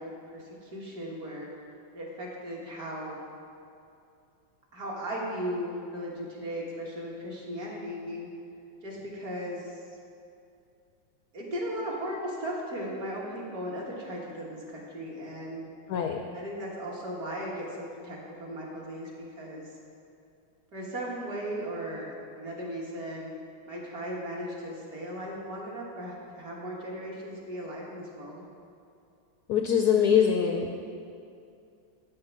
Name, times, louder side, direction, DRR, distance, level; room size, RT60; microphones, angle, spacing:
voice 1, 0.0-1.5 1.9-3.2 4.7-8.3 8.8-9.7 11.3-15.6 16.3-19.1 19.4-19.7 20.7-23.3 23.7-28.4, equal, 50° right, -3 dB, 1.9 m, -37 dB
voice 2, 15.9-16.2 29.5-30.7, left 8 dB, 75° left, 3 dB, 0.9 m, -23 dB
7.9 x 6.7 x 5.9 m, 2.5 s
omnidirectional pair, 2.1 m